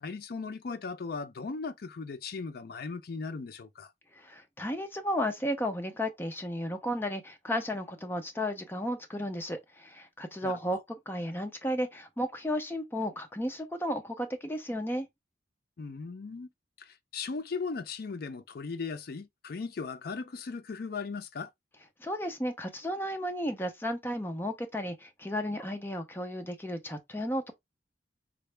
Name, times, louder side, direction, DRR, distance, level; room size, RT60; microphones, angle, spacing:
voice 1, 0.0-3.9 10.4-10.8 15.8-16.5 16.8-21.5, left 4 dB, 60° left, 0.5 m, -38 dB
voice 2, 4.2-10.8 11.1-15.1 22.0-27.5, equal, 15° left, 0.6 m, -33 dB
3.9 x 2.1 x 3.3 m
head